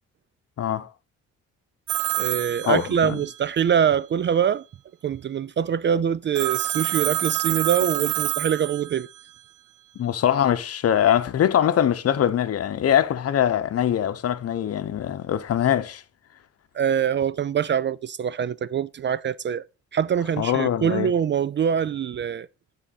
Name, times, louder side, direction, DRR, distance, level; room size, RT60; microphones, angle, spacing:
voice 1, 0.6-0.9 2.6-3.2 10.0-16.0 20.4-21.1, left 10 dB, 55° left, 0.8 m, -22 dB
Telephone, 1.9-3.4 6.3-9.2, right 15 dB, 90° right, 0.5 m, -27 dB
voice 2, 2.2-4.6 5.0-9.1 16.7-19.6 19.9-22.5, right 8 dB, 40° right, 0.4 m, -24 dB
9.9 x 3.8 x 4.1 m
cardioid pair, 90°, 30 cm